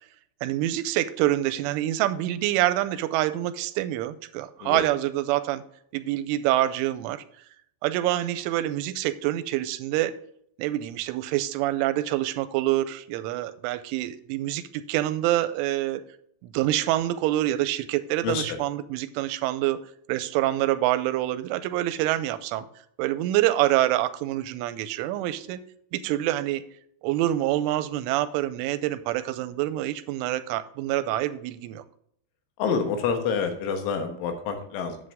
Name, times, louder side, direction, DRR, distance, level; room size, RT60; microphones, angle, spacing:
voice 1, 0.4-5.6 5.9-7.2 7.8-10.2 10.6-16.0 16.4-19.8 20.1-22.7 23.0-25.6 25.9-26.6 27.0-31.8, right 14 dB, 90° right, 13 dB, 3.1 m, -26 dB
voice 2, 18.2-18.6 32.6-35.0, left 6 dB, 80° left, 5 dB, 3.7 m, -27 dB
9.9 x 7.7 x 3.5 m, 0.68 s
omnidirectional pair, 5.5 m